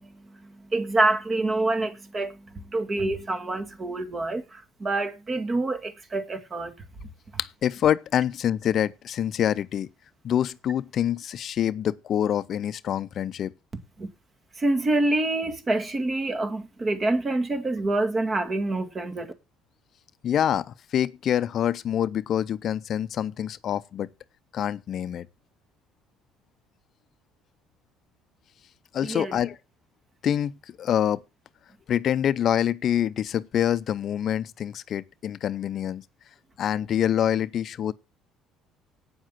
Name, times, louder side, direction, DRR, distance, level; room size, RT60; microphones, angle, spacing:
voice 1, 0.0-6.7 14.0-14.1 14.6-19.3 29.0-29.4, right 2 dB, 35° right, 2.0 m, -27 dB
voice 2, 7.4-9.9 10.2-13.5 20.2-24.1 24.5-25.3 28.9-29.6 30.2-30.5 30.8-31.2 31.9-36.0 36.6-37.9, left 10 dB, 55° left, 0.5 m, -26 dB
8.8 x 7.3 x 7.5 m
hypercardioid pair, 65°, 0 cm